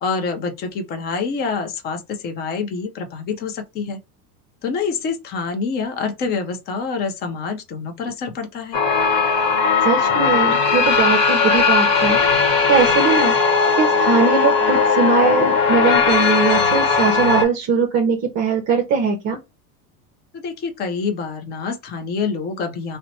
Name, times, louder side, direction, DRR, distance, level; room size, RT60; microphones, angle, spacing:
voice 1, 0.0-4.0 4.6-8.8 20.3-23.0, left 5 dB, 25° left, 0.5 m, -26 dB
sound 1, 8.7-17.4, left 5 dB, 45° left, 1.0 m, -17 dB
voice 2, 9.8-12.2 12.7-13.3 13.8-19.4, right 5 dB, 35° right, 0.7 m, -20 dB
2.8 x 2.1 x 4.0 m
supercardioid pair, 140°, 45 cm